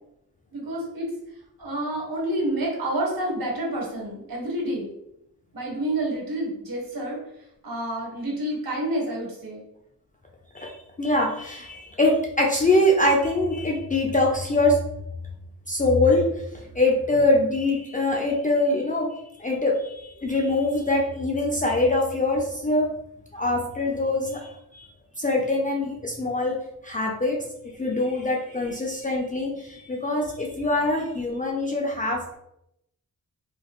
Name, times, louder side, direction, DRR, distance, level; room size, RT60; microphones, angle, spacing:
voice 1, 0.5-1.1 1.6-4.9 5.5-7.2 7.6-9.6, right 1 dB, 65° right, -2 dB, 1.4 m, -29 dB
voice 2, 10.5-14.8 15.7-16.3 16.7-19.1 19.4-22.9 23.3-24.9 25.2-26.6 26.8-27.4 27.8-32.4, left 2 dB, 20° left, -1 dB, 0.5 m, -23 dB
3.4 x 3.0 x 2.3 m, 0.80 s
cardioid pair, 75°, 37 cm